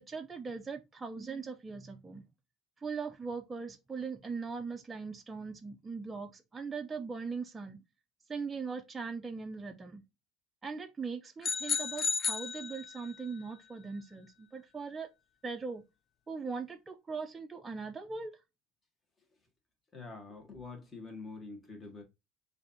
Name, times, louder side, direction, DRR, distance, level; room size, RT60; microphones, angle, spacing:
voice 1, 0.0-2.2 2.8-7.8 8.3-10.0 10.6-15.1 15.4-15.8 16.3-18.4, right 4 dB, 20° right, 0.4 m, -40 dB
sound 1, 11.4-13.3, left 5 dB, 40° left, 0.4 m, -33 dB
voice 2, 19.9-22.0, left 3 dB, 20° left, 1.4 m, -46 dB
6.2 x 2.7 x 2.8 m
cardioid pair, 125°, 0 cm